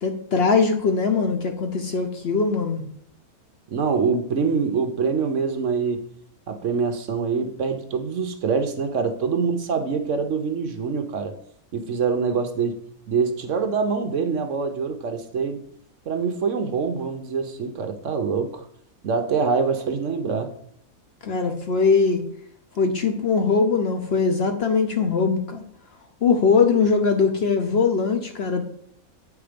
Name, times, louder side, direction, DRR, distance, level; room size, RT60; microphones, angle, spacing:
voice 1, 0.0-2.8 21.2-22.2 22.8-25.6 26.2-28.6, left 5 dB, 50° left, 6 dB, 0.9 m, -21 dB
voice 2, 3.7-6.0 6.5-11.3 11.7-12.8 13.1-15.6 16.1-18.7 19.0-20.5, right 5 dB, 60° right, 7 dB, 1.1 m, -25 dB
8.1 x 4.8 x 5.1 m, 0.67 s
omnidirectional pair, 1.6 m